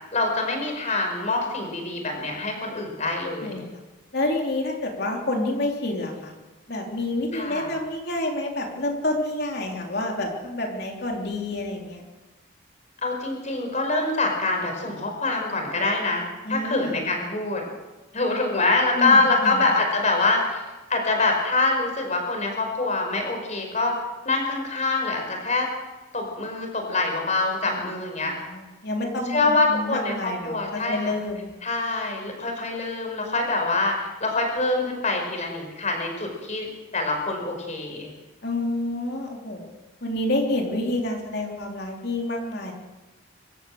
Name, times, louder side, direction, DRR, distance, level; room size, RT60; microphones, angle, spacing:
voice 1, 0.1-3.6 7.3-7.7 13.0-17.6 18.1-20.6 20.9-23.9 24.2-25.7 26.1-28.3 29.3-31.0 31.6-36.7 36.9-38.1, left 3 dB, 35° left, 2 dB, 5.2 m, -25 dB
voice 2, 4.1-6.3 6.7-12.0 16.4-17.0 18.9-19.6 27.6-28.0 28.3-31.5 38.4-39.7 40.0-42.7, left 1 dB, 50° left, 1 dB, 3.3 m, -28 dB
25.5 x 14.0 x 7.8 m, 1.2 s
head